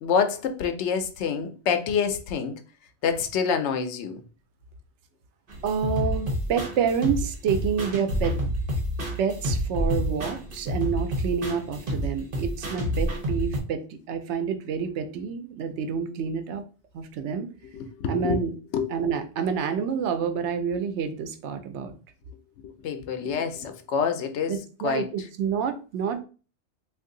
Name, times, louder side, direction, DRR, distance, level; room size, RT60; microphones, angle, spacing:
voice 1, 0.0-2.6 3.0-4.2 17.7-18.4 18.7-18.9 22.6-24.6 24.8-25.0, left 6 dB, 80° left, 0.9 m, -27 dB
sound 1, 5.5-13.6, equal, 55° right, 1.1 m, -29 dB
voice 2, 5.6-8.4 9.2-16.6 16.9-17.5 18.1-18.5 18.9-21.9 24.5-26.2, right 6 dB, 85° right, 0.9 m, -28 dB
2.6 x 2.5 x 3.7 m
omnidirectional pair, 1.1 m